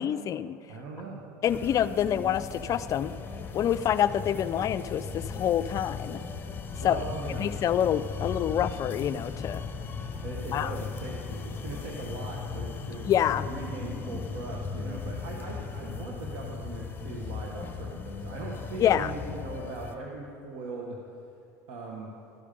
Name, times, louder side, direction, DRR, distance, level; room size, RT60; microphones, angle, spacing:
voice 1, 0.0-0.6 1.4-3.1 3.5-6.2 6.8-7.0 7.4-9.7 10.5-10.7 13.1-13.5 18.7-19.1, left 10 dB, 40° left, 13 dB, 0.4 m, -26 dB
voice 2, 0.7-1.2 6.8-7.5 10.2-21.0 21.7-22.1, right 3 dB, 70° right, -2 dB, 1.2 m, -39 dB
sound 1, 1.5-20.0, left 5 dB, 25° left, 0.9 m, -37 dB
12.5 x 5.0 x 6.8 m, 2.6 s
supercardioid pair, 100°, 8 cm